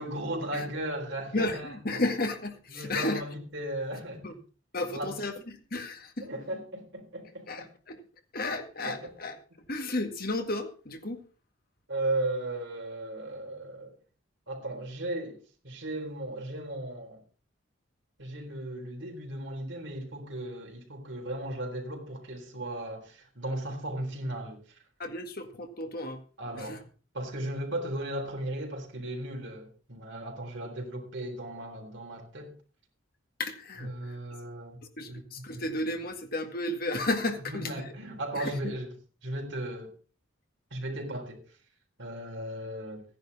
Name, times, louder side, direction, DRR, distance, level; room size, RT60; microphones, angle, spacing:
voice 1, 0.0-2.0 2.7-4.4 4.9-5.2 6.2-7.7 8.8-9.1 11.9-14.0 14.5-17.2 18.2-24.6 26.4-26.8 27.1-32.5 33.8-34.8 35.1-35.2 35.5-35.6 37.4-38.9 39.2-39.9 40.7-41.4 42.0-43.0, right 1 dB, 65° right, 3.8 m, -36 dB
voice 2, 1.3-3.2 4.2-4.3 4.7-5.3 5.7-6.3 7.5-8.0 8.3-9.4 9.7-11.2 25.0-26.2 26.5-26.8 33.4-34.2 35.0-37.7 38.3-38.7, left 2 dB, 45° left, 1.8 m, -33 dB
14.5 x 10.5 x 4.1 m
head